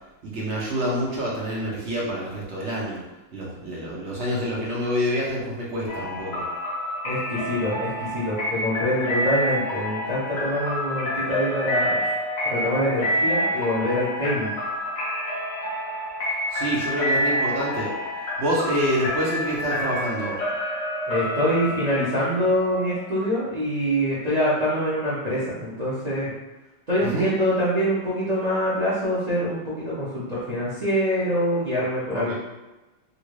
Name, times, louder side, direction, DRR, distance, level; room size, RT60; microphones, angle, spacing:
voice 1, 0.2-3.0 3.3-6.4 16.5-17.9 18.4-20.4 27.0-27.3 32.1-32.3, equal, 55° right, -5 dB, 0.7 m, -27 dB
sound 1, 5.9-23.5, equal, 60° left, 1.0 m, -28 dB
voice 2, 7.0-12.1 12.4-14.5 21.1-26.3 26.9-32.3, equal, 90° right, -9 dB, 0.3 m, -25 dB
3.0 x 2.5 x 3.1 m, 1.1 s
omnidirectional pair, 2.0 m